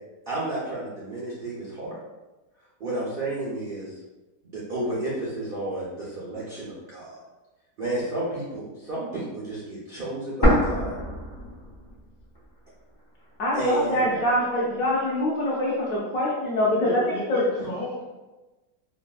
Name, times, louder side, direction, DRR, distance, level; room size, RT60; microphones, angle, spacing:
voice 1, 0.3-2.0 2.8-3.9 4.4-7.2 7.8-11.0 13.5-14.0, right 1 dB, 75° right, -7 dB, 0.4 m, -31 dB
sound 1, 10.4-12.4 12.7-12.8 13.5-14.4, equal, 35° left, 0.4 m, -25 dB
voice 2, 13.4-17.0 17.3-17.4, left 1 dB, 70° left, -5 dB, 0.8 m, -24 dB
voice 3, 13.9-14.3 15.5-15.7 16.8-18.0, equal, 55° left, -6 dB, 1.2 m, -34 dB
3.2 x 2.2 x 2.3 m, 1.1 s
omnidirectional pair, 1.8 m